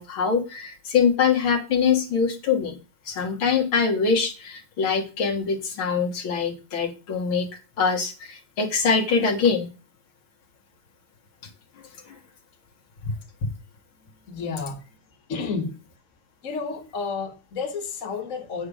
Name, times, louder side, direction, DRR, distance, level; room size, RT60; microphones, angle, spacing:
voice 1, 0.0-2.7 3.1-7.5 7.8-9.7 12.1-12.2, left 5 dB, 65° left, 2.3 m, -23 dB
voice 2, 14.0-14.8 15.3-15.7 16.4-18.7, left 4 dB, 40° left, 1.8 m, -31 dB
8.7 x 6.7 x 4.9 m
omnidirectional pair, 2.4 m